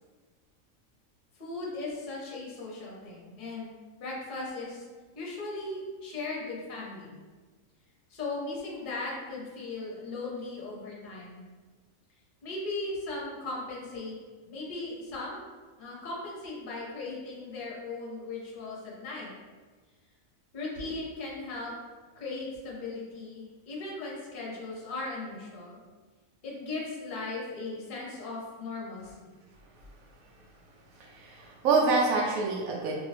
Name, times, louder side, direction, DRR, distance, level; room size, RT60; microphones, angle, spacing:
voice 1, 1.4-3.7 4.0-4.9 5.1-7.2 8.1-11.4 12.4-14.2 14.5-15.4 15.8-19.3 20.5-21.7 22.2-25.8 26.4-29.3, left 2 dB, 45° left, -4 dB, 0.8 m, -37 dB
voice 2, 31.0-33.0, right 3 dB, 80° right, -1 dB, 1.0 m, -26 dB
2.9 x 2.5 x 3.2 m, 1.4 s
omnidirectional pair, 1.4 m